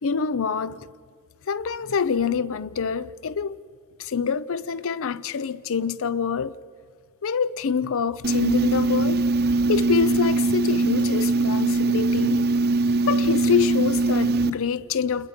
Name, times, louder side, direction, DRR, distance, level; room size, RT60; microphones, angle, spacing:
voice 1, 0.0-0.8 1.5-3.6 4.0-6.5 7.2-9.2 9.7-12.5 13.1-15.3, left 6 dB, 65° left, 0.5 m, -26 dB
sound 1, 8.2-14.5, right 3 dB, 45° right, 0.9 m, -21 dB
29.5 x 21.0 x 5.9 m
head